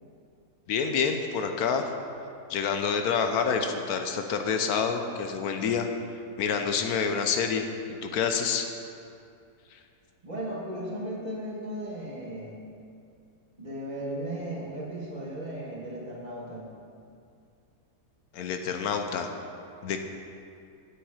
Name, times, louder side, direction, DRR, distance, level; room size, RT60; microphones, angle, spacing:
voice 1, 0.7-1.8 2.5-5.9 6.4-7.6 8.0-8.7 9.7-9.8 18.3-19.3 19.8-20.0, left 6 dB, 80° left, 5 dB, 1.2 m, -27 dB
voice 2, 10.2-12.6 13.6-16.7, right 1 dB, 30° right, -4 dB, 1.5 m, -36 dB
9.0 x 8.2 x 4.9 m, 2.5 s
omnidirectional pair, 1.6 m